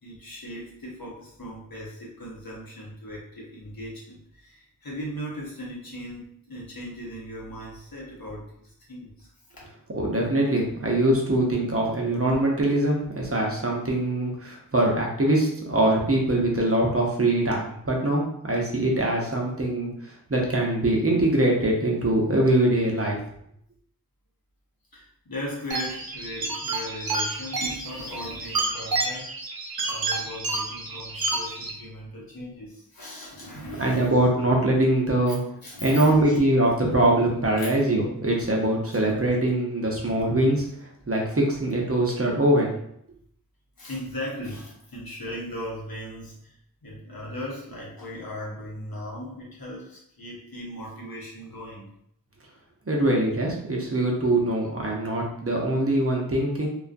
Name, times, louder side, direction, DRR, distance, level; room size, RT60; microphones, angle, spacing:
voice 1, 0.0-9.3 9.5-9.6 24.9-29.3 29.8-34.2 35.3-35.4 35.6-36.4 37.6-37.7 39.1-39.2 43.8-46.6 46.8-51.9, equal, 80° left, -4 dB, 0.9 m, -38 dB
voice 2, 9.9-23.2 33.8-35.4 35.8-40.6 41.1-42.7 52.9-56.7, right 1 dB, 40° right, -1 dB, 0.7 m, -23 dB
sound 1, 25.7-31.7, right 3 dB, 85° right, 0.5 m, -30 dB
2.4 x 2.2 x 2.5 m, 0.71 s
wide cardioid pair, 40°, 35 cm